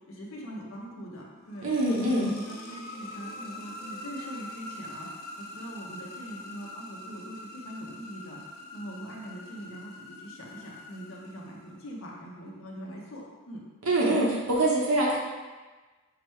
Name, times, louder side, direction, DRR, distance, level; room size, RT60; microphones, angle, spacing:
voice 1, 0.1-1.7 2.1-13.6, equal, 70° left, -2 dB, 0.8 m, -42 dB
sound 1, 1.3-12.1, left 1 dB, 45° left, 0.5 m, -44 dB
voice 2, 1.6-2.3 13.8-15.2, right 1 dB, 85° right, -3 dB, 0.9 m, -24 dB
5.9 x 2.1 x 3.0 m, 1.3 s
head